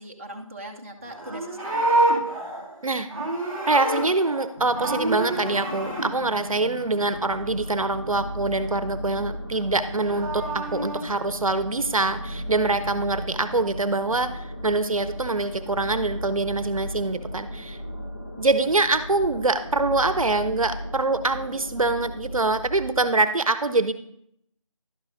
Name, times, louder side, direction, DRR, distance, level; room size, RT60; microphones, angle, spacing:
voice 1, 0.0-2.1 6.8-7.0, right 1 dB, 25° right, -1 dB, 0.6 m, -40 dB
Livestock farm animals working animals, 1.0-4.5 4.7-6.1 9.8-11.0, right 2 dB, 5° right, 1.3 m, -27 dB
voice 2, 3.7-17.8 18.4-23.9, right 3 dB, 75° right, 11 dB, 0.7 m, -24 dB
sound 1, 4.5-22.6, equal, 25° left, 0.6 m, -41 dB
sound 2, 7.1-23.1, equal, 70° left, 1.6 m, -37 dB
11.5 x 9.4 x 2.6 m, 0.71 s
figure-of-eight pair, 170°, 18 cm